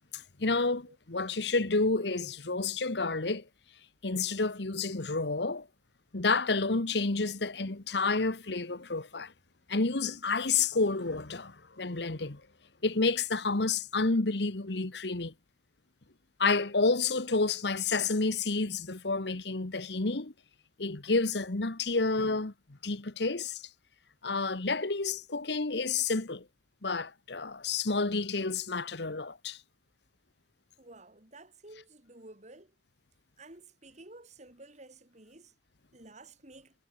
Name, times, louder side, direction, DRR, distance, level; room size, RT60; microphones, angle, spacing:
voice 1, 0.1-3.5 4.0-5.7 6.1-9.3 9.7-12.4 12.8-15.3 16.4-20.3 20.8-22.5 22.8-23.6 24.2-26.4 26.8-29.6, left 3 dB, 65° left, 1.4 m, -30 dB
voice 2, 30.8-32.7 33.4-35.5 35.9-36.7, right 2 dB, 40° right, 4.5 m, -52 dB
head